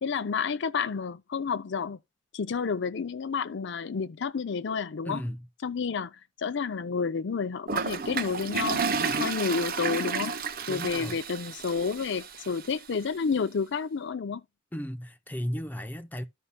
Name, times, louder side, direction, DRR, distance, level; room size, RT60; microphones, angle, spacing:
voice 1, 0.0-2.0 2.3-5.2 5.6-8.8 9.2-10.3 10.7-14.4, left 5 dB, 65° left, 0.5 m, -30 dB
voice 2, 5.1-5.4 10.7-11.2 14.7-16.3, equal, 10° left, 0.6 m, -35 dB
Toilet flush, 7.7-12.7, right 5 dB, 50° right, 0.8 m, -31 dB
14.0 x 5.4 x 2.2 m
head